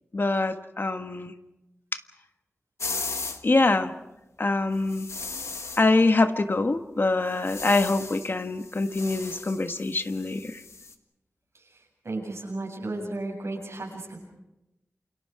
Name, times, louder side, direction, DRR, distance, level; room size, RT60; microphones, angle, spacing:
voice 1, 0.1-1.3 3.4-3.9 4.4-5.1 5.8-10.6, left 2 dB, 50° left, 8 dB, 1.4 m, -24 dB
sound 1, 2.8-3.4 4.9-5.8 7.3-8.3 8.6-10.9, left 4 dB, 85° left, 1.7 m, -36 dB
voice 2, 12.0-14.2, right 2 dB, 80° right, 0 dB, 7.8 m, -33 dB
28.5 x 28.0 x 4.8 m, 0.94 s
wide cardioid pair, 85°, 5 cm